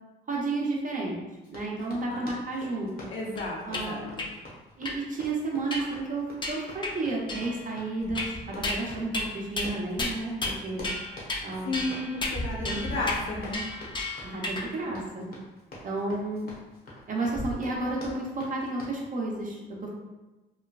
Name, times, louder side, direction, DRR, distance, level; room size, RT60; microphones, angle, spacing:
voice 1, 0.3-1.2 1.5-3.1 3.7-4.1 4.8-10.9 11.4-11.8 12.6-12.8 14.2-15.3 15.8-16.5 17.1-19.6, right 2 dB, 40° right, -2 dB, 0.7 m, -32 dB
Run, 1.4-19.0, left 1 dB, 50° left, 1.0 m, -46 dB
voice 2, 3.1-4.2 11.6-13.6, left 2 dB, 75° left, -2 dB, 0.7 m, -33 dB
sound 1, 3.4-3.8 4.2-4.3 4.8-5.0 5.7-6.0 6.4-6.9 7.3-7.7 8.1-8.8 9.1-9.3 9.6-9.7 10.0-10.6 10.8-11.4 11.7-14.7, left 2 dB, 25° left, 0.4 m, -33 dB
sound 2, 8.0-9.9 12.3-14.9 17.3-17.6, equal, 10° right, 0.8 m, -39 dB
3.1 x 2.2 x 2.3 m, 1.1 s
cardioid pair, 90°, 20 cm